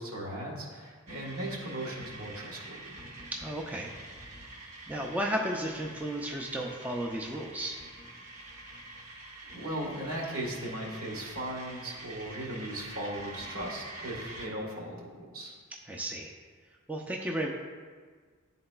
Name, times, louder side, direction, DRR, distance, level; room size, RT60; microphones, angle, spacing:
voice 1, 0.0-3.0 9.5-15.5, right 1 dB, 80° right, -3 dB, 1.4 m, -37 dB
sound 1, 1.1-14.5, right 2 dB, 30° right, 0.8 m, -46 dB
voice 2, 3.3-3.9 4.4-7.8 15.9-16.3 16.9-17.5, right 1 dB, 5° right, -1 dB, 0.3 m, -34 dB
11.0 x 3.9 x 2.2 m, 1.5 s
head